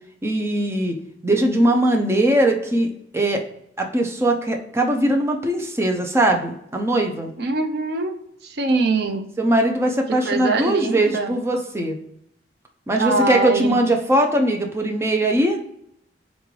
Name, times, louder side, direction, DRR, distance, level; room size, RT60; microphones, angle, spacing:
voice 1, 0.2-1.0 1.2-3.4 3.8-7.3 9.4-12.0 12.9-15.6, right 1 dB, 15° right, 2 dB, 0.5 m, -20 dB
voice 2, 7.4-9.3 10.2-11.3 13.0-13.7, right 3 dB, 60° right, 5 dB, 0.6 m, -23 dB
3.8 x 3.7 x 3.1 m, 0.74 s
head